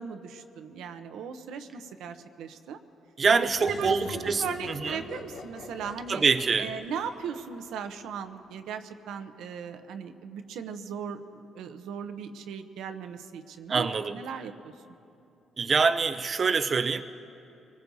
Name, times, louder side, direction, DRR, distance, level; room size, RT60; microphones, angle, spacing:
voice 1, 0.0-2.8 3.4-6.2 6.6-13.9 14.1-14.7, right 7 dB, 85° right, 8 dB, 0.7 m, -38 dB
voice 2, 3.2-5.0 6.1-6.7 13.7-14.2 15.6-17.0, right 5 dB, 40° right, 8 dB, 0.5 m, -25 dB
sound 1, 3.5-8.0, left 4 dB, 70° left, 1.1 m, -43 dB
24.5 x 20.0 x 2.7 m, 2.8 s
cardioid pair, 90°, 0 cm